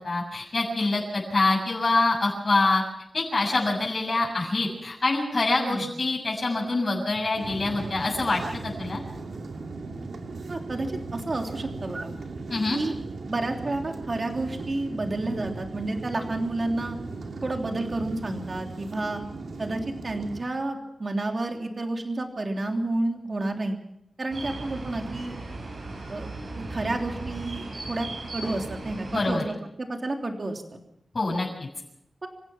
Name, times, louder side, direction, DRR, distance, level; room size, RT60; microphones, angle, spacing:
voice 1, 0.0-2.8 3.1-9.0 12.5-12.8 29.1-29.4 31.1-31.7, left 2 dB, 40° left, -4 dB, 7.1 m, -25 dB
sound 1, 7.3-20.4, right 3 dB, 80° right, 2.6 m, -37 dB
voice 2, 10.5-12.1 12.7-12.9 13.3-17.0 17.4-19.2 19.6-23.8 24.2-25.4 26.1-26.3 26.6-28.1 28.3-29.4 29.8-30.8 32.2-32.3, right 2 dB, 40° right, 3 dB, 3.2 m, -30 dB
sound 2, 24.3-29.4, right 2 dB, 55° right, 6.0 m, -37 dB
27.5 x 16.0 x 6.0 m, 0.78 s
wide cardioid pair, 120°, 0 cm